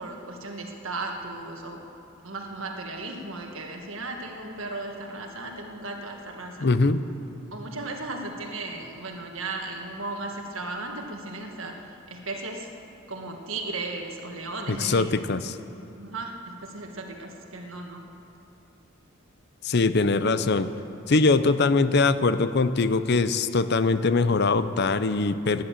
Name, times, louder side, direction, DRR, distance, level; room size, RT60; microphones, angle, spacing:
voice 1, 0.0-1.8 2.2-6.7 7.5-12.7 13.1-15.1 16.0-18.0, right 2 dB, 70° right, 2 dB, 1.7 m, -36 dB
voice 2, 6.6-7.0 14.7-15.6 19.6-20.7 21.1-25.6, left 3 dB, 50° left, 12 dB, 0.6 m, -22 dB
17.0 x 11.0 x 7.4 m, 2.9 s
head